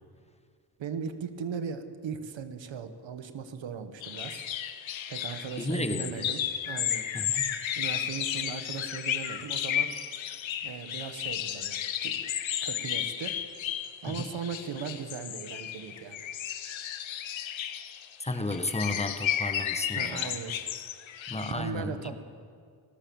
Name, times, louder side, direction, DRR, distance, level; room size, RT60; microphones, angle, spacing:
voice 1, 0.8-4.5 5.1-7.0 7.8-9.9 10.6-12.3 12.6-13.3 14.0-16.3 20.0-20.6 21.5-22.2, right 6 dB, 80° right, 9 dB, 1.7 m, -38 dB
sound 1, 4.0-21.5, left 10 dB, 85° left, 1.2 m, -33 dB
voice 2, 5.6-6.2 7.1-7.5 14.1-14.2 18.2-20.4 21.3-21.9, left 2 dB, 15° left, 8 dB, 1.5 m, -33 dB
26.0 x 14.0 x 7.3 m, 2.1 s
cardioid pair, 100°, 45 cm